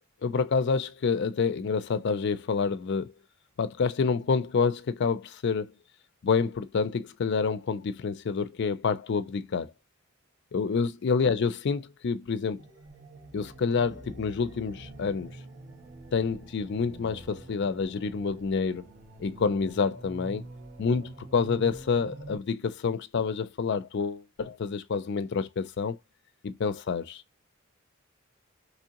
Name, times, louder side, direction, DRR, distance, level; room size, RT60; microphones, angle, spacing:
voice 1, 0.2-3.1 3.6-5.7 6.2-9.7 10.5-12.6 13.3-15.4 16.1-18.9 19.2-20.5 20.8-26.0 26.4-27.2, left 5 dB, 55° left, 0.4 m, -28 dB
sound 1, 12.6-22.4, right 1 dB, 55° right, 2.0 m, -46 dB
3.5 x 3.0 x 2.8 m
head